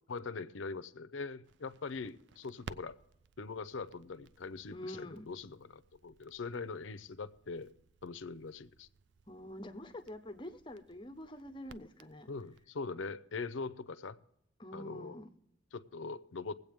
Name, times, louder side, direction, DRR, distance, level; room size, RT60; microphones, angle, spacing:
voice 1, 0.1-3.0 3.4-7.7 8.0-8.9 12.3-14.2 14.7-15.2 15.7-16.5, left 4 dB, 90° left, 13 dB, 0.6 m, -42 dB
Crackle, 1.4-12.6, right 5 dB, 70° right, 0.4 m, -57 dB
voice 2, 4.7-5.3 9.3-12.3 14.6-15.3, left 1 dB, 25° left, 9 dB, 0.7 m, -46 dB
21.0 x 8.2 x 3.6 m, 0.80 s
head